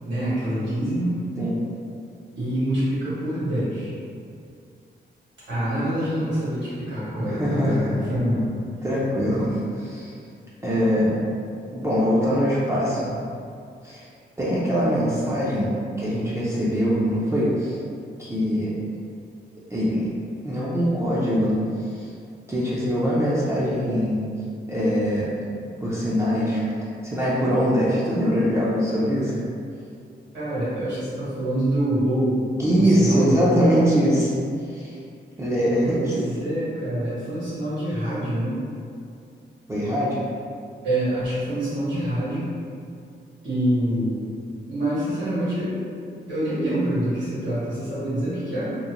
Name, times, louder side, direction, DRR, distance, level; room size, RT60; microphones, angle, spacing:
voice 1, 0.0-1.2 2.3-3.9 5.5-8.4 30.3-32.4 32.7-33.6 35.9-38.6 40.8-42.5 43.4-44.2 44.7-45.8 46.3-48.8, right 1 dB, 70° right, -11 dB, 1.4 m, -26 dB
voice 2, 7.2-7.9 8.8-10.1 10.6-11.2 11.7-13.1 13.8-14.0 14.4-15.7 16.0-17.8 18.2-18.7 19.7-20.1 20.4-21.6 21.9-22.1 22.5-24.2 24.7-25.3 25.8-26.6 27.0-29.3 32.6-34.3 34.7-35.0 35.4-36.4 39.7-40.2, equal, 15° right, -8 dB, 0.4 m, -22 dB
2.9 x 2.0 x 2.4 m, 2.4 s
wide cardioid pair, 145°, 19 cm